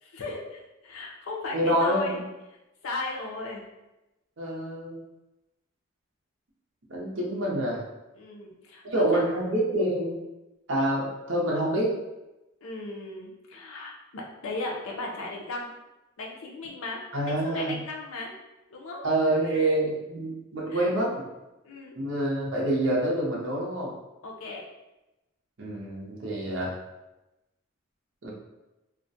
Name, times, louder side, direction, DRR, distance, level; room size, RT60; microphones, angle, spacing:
voice 1, 0.0-2.2 2.8-3.6 8.2-9.3 12.6-15.7 16.2-18.3 18.7-19.0 19.5-19.6 20.7-20.9 21.6-22.0 24.2-24.6, left 2 dB, 85° left, -1 dB, 0.5 m, -36 dB
voice 2, 1.5-2.2 4.4-5.0 6.9-7.8 8.8-10.2 10.7-11.9 17.1-17.8 19.0-21.1 21.9-23.9 25.6-26.7 28.2-28.3, right 1 dB, 65° right, -3 dB, 0.6 m, -27 dB
2.3 x 2.1 x 2.6 m, 0.98 s
head